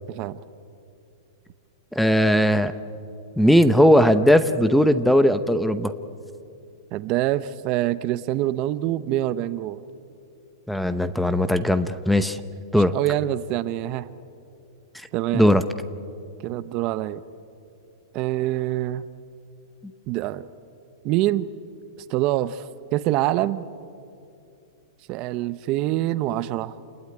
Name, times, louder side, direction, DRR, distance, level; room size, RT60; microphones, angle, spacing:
voice 1, 0.1-0.4 6.9-9.8 12.7-14.1 15.1-15.5 16.4-17.2 18.1-19.1 20.1-20.5 21.0-21.5 22.1-23.7 25.1-26.8, right 14 dB, 30° right, 15 dB, 0.7 m, -25 dB
voice 2, 2.0-2.7 3.4-5.9 10.7-12.4 12.7-12.9 15.3-15.6, equal, ahead, 12 dB, 0.7 m, -18 dB
29.0 x 20.0 x 9.7 m, 2.6 s
supercardioid pair, 160°, 2 cm